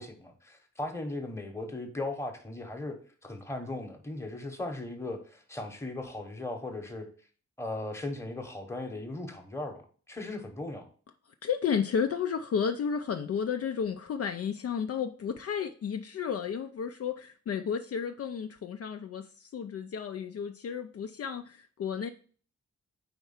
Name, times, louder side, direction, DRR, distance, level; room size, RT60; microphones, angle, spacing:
voice 1, 0.0-3.0 3.2-7.1 7.6-10.9, left 2 dB, 10° left, 1.0 m, -37 dB
voice 2, 11.4-22.1, left 7 dB, 55° left, 0.4 m, -32 dB
4.5 x 4.3 x 5.7 m
wide cardioid pair, 140°, 29 cm